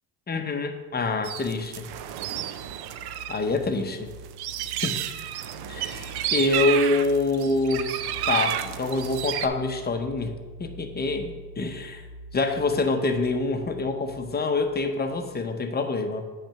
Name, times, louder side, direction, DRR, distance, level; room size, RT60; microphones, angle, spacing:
voice 1, 0.3-1.9 3.3-4.1 4.8-5.0 5.7-7.9 8.3-12.0 12.3-16.3, left 3 dB, 20° left, 6 dB, 0.7 m, -26 dB
sound 1, 1.2-3.4 3.6-9.5, right 11 dB, 55° right, 0.6 m, -31 dB
sound 2, 1.4-15.5, right 1 dB, 20° right, 1.7 m, -45 dB
8.8 x 3.3 x 5.7 m, 1.4 s
supercardioid pair, 95°, 46 cm